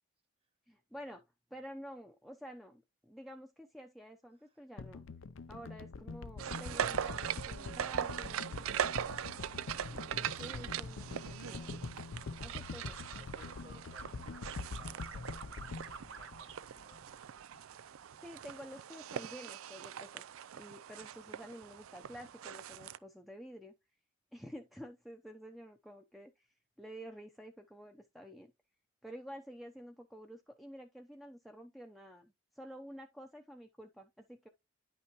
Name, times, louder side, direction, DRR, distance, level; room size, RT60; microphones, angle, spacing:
voice 1, 0.7-1.2 1.5-5.0 5.5-9.4 9.7-11.8 12.4-13.0 18.2-20.3 20.5-23.7 24.3-26.5 26.8-28.5 29.0-34.5, equal, ahead, 0.7 m, -50 dB
sound 1, 4.8-17.1 17.4-17.5, left 4 dB, 70° left, 0.5 m, -45 dB
sound 2, 6.4-23.0, right 9 dB, 90° right, 0.4 m, -41 dB
sound 3, 12.2-13.6 13.9-16.6 16.9-17.7 18.0-18.4, right 6 dB, 70° right, 0.9 m, -50 dB
voice 2, 12.8-17.7, right 1 dB, 30° right, 1.5 m, -62 dB
10.5 x 5.7 x 3.0 m
head